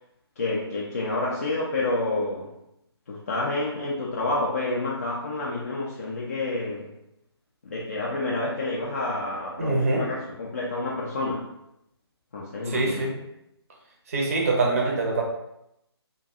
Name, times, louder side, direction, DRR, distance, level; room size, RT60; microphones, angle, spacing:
voice 1, 0.4-2.5 3.1-6.9 7.6-11.4 12.3-13.1, left 2 dB, 35° left, -5 dB, 0.3 m, -29 dB
voice 2, 9.6-10.0 12.6-13.1 14.1-15.2, right 3 dB, 35° right, 0 dB, 0.5 m, -24 dB
2.4 x 2.2 x 2.5 m, 0.82 s
figure-of-eight pair, 145°, 14 cm